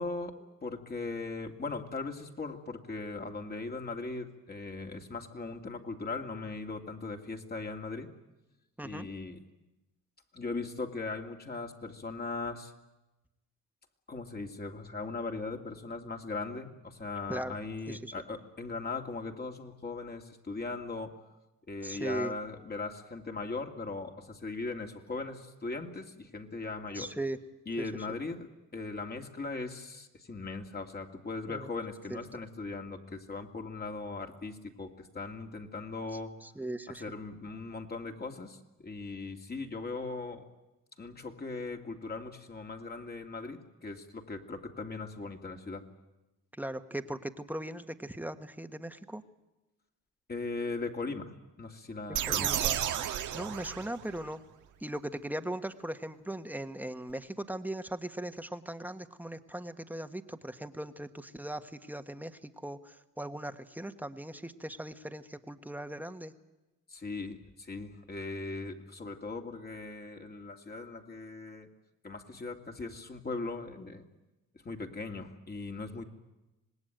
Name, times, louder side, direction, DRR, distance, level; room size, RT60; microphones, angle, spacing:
voice 1, 0.0-8.1 8.8-9.4 10.3-12.7 14.1-21.2 21.7-27.1 27.7-36.3 36.9-38.6 38.8-40.4 41.0-45.8 50.3-52.7 66.9-71.7 72.0-74.0 74.6-76.0, left 3 dB, 30° left, 3 dB, 2.5 m, -39 dB
voice 2, 21.8-22.3 26.9-27.4 31.5-31.7 32.1-32.2 36.4-37.0 46.6-49.2 52.2-52.8 53.3-54.4 54.8-66.3, right 1 dB, 5° right, 8 dB, 1.4 m, -39 dB
sound 1, 52.1-54.3, right 10 dB, 80° right, 1.5 m, -32 dB
26.0 x 19.5 x 9.2 m, 1.0 s
cardioid pair, 90°, 30 cm